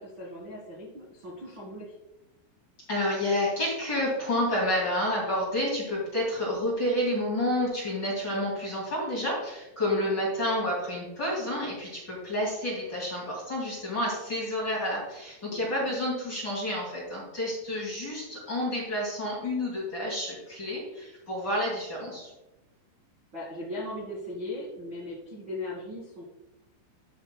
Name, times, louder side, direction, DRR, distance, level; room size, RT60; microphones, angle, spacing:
voice 1, 0.0-1.9 9.8-10.1 15.5-15.9 23.3-26.2, left 1 dB, 75° right, -7 dB, 1.1 m, -38 dB
voice 2, 2.9-22.3, left 1 dB, 30° left, -5 dB, 2.1 m, -29 dB
12.0 x 8.3 x 2.3 m, 0.98 s
omnidirectional pair, 5.5 m